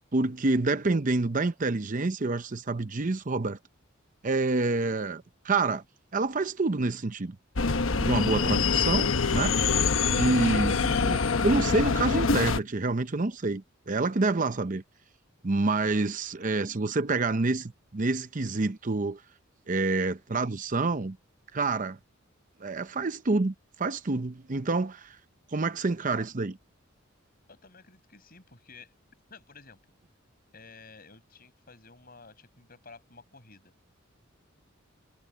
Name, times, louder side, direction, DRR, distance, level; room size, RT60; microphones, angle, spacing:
voice 1, 0.1-3.6 4.2-5.8 6.1-7.4 8.0-9.5 10.0-14.8 15.4-19.2 19.7-21.2 21.5-22.0 22.6-25.2 25.5-26.6, right 3 dB, 40° right, 0.7 m, -27 dB
sound 1, 7.6-12.6, left 4 dB, 80° left, 1.1 m, -25 dB
voice 2, 27.5-28.9 29.3-29.8 30.5-33.7, left 4 dB, 45° left, 7.1 m, -52 dB
head